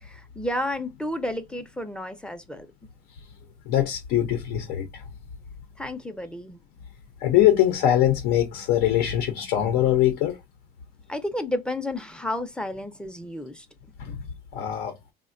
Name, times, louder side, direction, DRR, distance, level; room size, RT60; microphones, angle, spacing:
voice 1, 0.0-2.7 5.8-6.6 11.1-13.7, left 1 dB, 5° left, 0.4 m, -31 dB
voice 2, 3.7-5.0 7.2-10.4 14.0-14.2 14.5-15.0, left 12 dB, 85° left, 0.6 m, -22 dB
3.4 x 2.1 x 2.4 m
cardioid pair, 115°, 16 cm